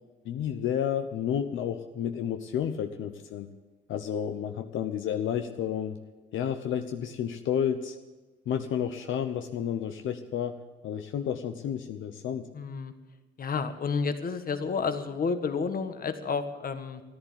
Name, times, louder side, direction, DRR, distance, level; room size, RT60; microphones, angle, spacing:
voice 1, 0.2-3.5 3.9-6.0 6.3-8.0 8.5-10.6 10.8-12.5, left 9 dB, 75° left, 6 dB, 0.9 m, -31 dB
voice 2, 12.5-12.9 13.4-17.0, left 5 dB, 45° left, 9 dB, 1.6 m, -30 dB
14.0 x 11.0 x 8.8 m, 1.3 s
cardioid pair, 90°, 20 cm